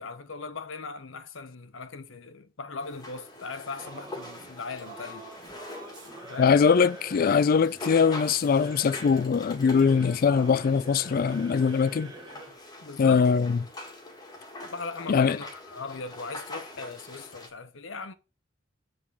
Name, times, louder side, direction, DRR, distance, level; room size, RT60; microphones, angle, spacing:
voice 1, 0.0-5.3 6.2-6.6 12.8-13.3 14.6-18.1, left 4 dB, 70° left, 0.9 m, -39 dB
sound 1, 2.8-17.5, left 2 dB, 20° left, 1.7 m, -44 dB
Singing / Musical instrument, 3.8-12.6, right 2 dB, 25° right, 2.5 m, -45 dB
voice 2, 6.4-12.1 13.0-13.6 15.1-15.4, left 6 dB, 45° left, 0.3 m, -22 dB
8.5 x 3.7 x 6.1 m
head